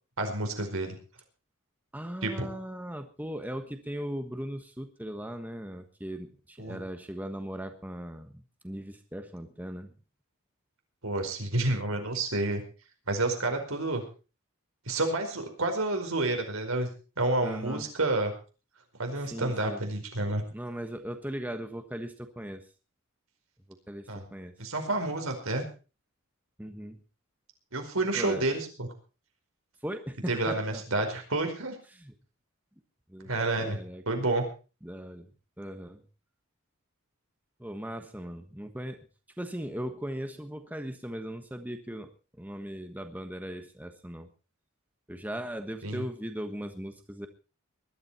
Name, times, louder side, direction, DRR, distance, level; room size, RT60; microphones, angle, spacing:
voice 1, 0.2-1.0 2.2-2.5 6.6-6.8 11.0-12.6 13.1-14.0 14.9-16.9 17.2-18.3 19.0-20.4 24.1-24.2 24.6-25.6 27.7-28.9 30.3-31.8 33.2-33.8 34.1-34.4 45.8-46.0, right 2 dB, 80° right, 4 dB, 4.9 m, -29 dB
voice 2, 1.9-9.9 17.4-17.9 19.3-19.8 20.5-22.6 23.9-24.5 26.6-27.0 28.1-28.5 29.8-30.8 31.9-32.1 33.1-34.0 34.8-35.3 35.6-36.0 37.6-39.1 39.4-42.1 42.4-44.3 45.1-47.3, equal, 10° right, 7 dB, 1.3 m, -38 dB
20.5 x 12.5 x 4.4 m, 0.35 s
head